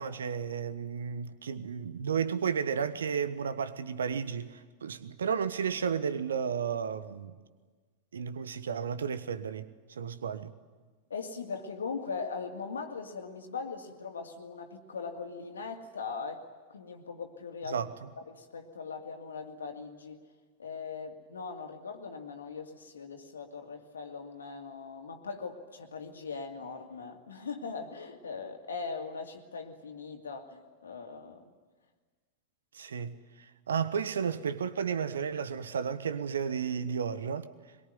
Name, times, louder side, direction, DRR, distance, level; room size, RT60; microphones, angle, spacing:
voice 1, 0.0-7.4 8.1-10.5 17.7-17.9 32.7-37.5, right 7 dB, 65° right, 1.3 m, -33 dB
voice 2, 11.1-16.4 16.7-17.8 18.3-20.2 20.6-31.4, left 5 dB, 70° left, 2.4 m, -40 dB
23.5 x 22.0 x 9.4 m
figure-of-eight pair, 90°, 0 cm